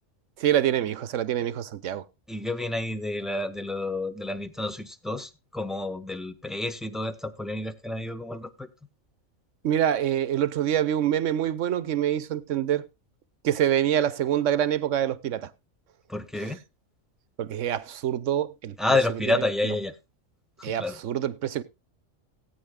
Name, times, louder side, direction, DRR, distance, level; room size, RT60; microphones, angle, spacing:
voice 1, 0.4-2.0 9.6-12.9 13.4-15.5 17.4-18.8 20.6-21.6, right 10 dB, 65° right, 1.1 m, -25 dB
voice 2, 2.3-8.7 16.1-16.6 18.8-20.0 20.6-21.0, left 2 dB, ahead, 0.6 m, -29 dB
18.0 x 9.3 x 2.2 m
omnidirectional pair, 1.4 m